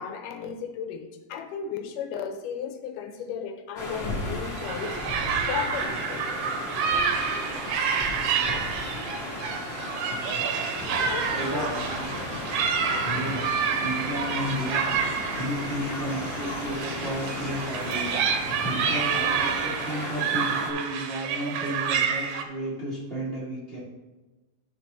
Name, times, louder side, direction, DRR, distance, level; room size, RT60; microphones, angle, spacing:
voice 1, 0.0-6.3 11.0-11.7, left 7 dB, 80° left, 6 dB, 2.1 m, -35 dB
sound 1, 3.8-20.7, left 1 dB, 40° left, 0.9 m, -35 dB
sound 2, 4.4-22.4, right 6 dB, 75° right, 1.9 m, -29 dB
sound 3, 10.8-19.7, left 2 dB, 60° left, 1.9 m, -40 dB
voice 2, 11.3-12.1 13.0-23.8, equal, 55° right, -7 dB, 0.6 m, -33 dB
10.5 x 4.7 x 3.9 m, 1.2 s
omnidirectional pair, 3.9 m